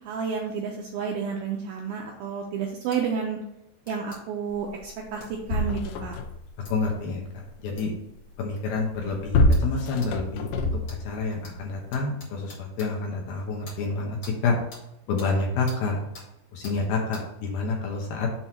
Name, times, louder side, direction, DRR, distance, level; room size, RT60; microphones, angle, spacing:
voice 1, 0.0-3.4 3.9-5.2 5.5-6.2, right 6 dB, 85° right, 0 dB, 2.1 m, -30 dB
sound 1, 2.9-3.0 3.8-4.2 5.2-5.3 6.6-6.7 7.8-7.9 8.6-8.7 9.5-9.7 10.0-10.1 10.8-11.0 11.4-11.5 11.9-12.9 13.6-13.8 14.2-14.3 14.7-14.8 15.2-15.3 15.7-15.8 16.1-16.3 16.6-16.8 17.1-17.2, left 2 dB, 45° left, 1.2 m, -45 dB
sound 2, 4.8-4.9 5.2-6.5 8.8-11.2 11.9-12.0, left 2 dB, 90° left, 2.8 m, -25 dB
voice 2, 6.7-7.3 7.6-7.9 8.4-10.7 11.0-14.2 14.4-14.6 15.1-16.0 16.5-18.3, left 4 dB, 75° left, 0 dB, 2.3 m, -28 dB
7.3 x 2.7 x 5.8 m, 0.83 s
omnidirectional pair, 4.9 m